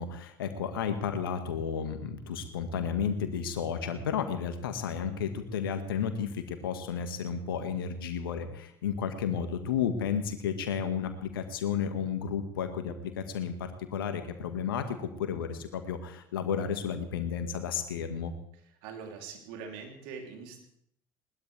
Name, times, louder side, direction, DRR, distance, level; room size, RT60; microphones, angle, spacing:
voice 1, 0.0-18.3, left 7 dB, 75° left, 7 dB, 1.8 m, -32 dB
voice 2, 18.5-20.6, right 5 dB, 65° right, 2 dB, 3.3 m, -43 dB
21.0 x 19.5 x 3.5 m, 0.69 s
figure-of-eight pair, 60°, 12 cm